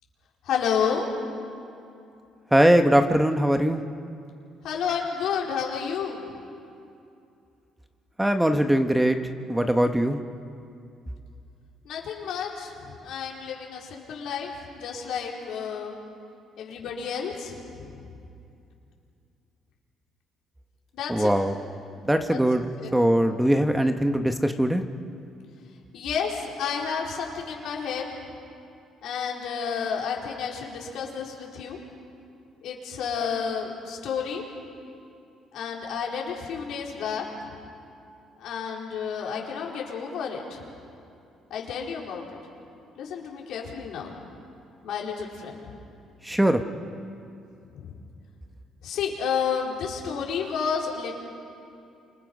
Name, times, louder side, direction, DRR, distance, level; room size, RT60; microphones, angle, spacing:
voice 1, 0.4-1.0 4.6-6.3 11.8-16.0 16.6-18.0 20.9-21.3 22.3-22.4 22.8-23.0 25.9-28.1 29.0-31.8 32.6-34.4 35.5-37.2 38.4-40.6 41.5-42.4 43.0-44.1 44.8-45.6 47.7-47.9 48.8-51.2, left 7 dB, 75° left, -1 dB, 4.5 m, -31 dB
voice 2, 2.5-3.8 8.2-9.2 9.5-10.2 21.1-21.5 22.1-24.8 46.2-46.6, right 1 dB, 5° right, 6 dB, 1.4 m, -21 dB
29.0 x 26.0 x 5.5 m, 2.6 s
supercardioid pair, 70°, 0 cm